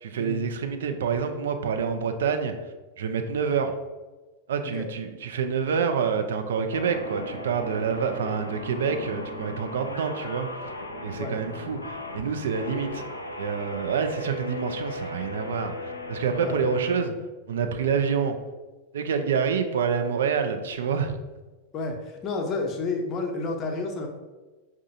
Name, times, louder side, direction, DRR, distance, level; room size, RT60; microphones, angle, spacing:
voice 1, 0.0-2.5 3.0-3.7 4.5-10.5 11.0-13.0 13.4-17.1 17.5-18.4 18.9-21.2, right 6 dB, 60° right, 6 dB, 0.4 m, -27 dB
sound 1, 6.7-17.0, left 1 dB, 80° left, 0.4 m, -37 dB
voice 2, 21.7-24.1, left 3 dB, 30° left, 2 dB, 0.6 m, -30 dB
5.5 x 2.4 x 2.6 m, 1.2 s
figure-of-eight pair, 90°, 0 cm